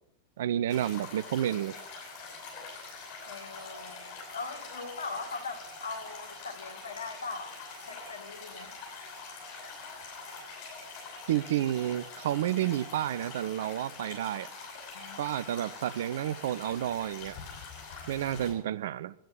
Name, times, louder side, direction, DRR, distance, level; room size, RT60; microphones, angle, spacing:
voice 1, 0.4-1.8 11.3-14.5 15.2-17.4 18.1-19.1, right 12 dB, 60° right, 0.6 m, -30 dB
sound 1, 0.7-18.5, left 4 dB, 40° left, 7.7 m, -44 dB
voice 2, 3.3-7.6 7.8-8.8 14.9-15.2, left 4 dB, 70° left, 2.3 m, -40 dB
11.5 x 10.5 x 8.7 m
figure-of-eight pair, 90°, 0 cm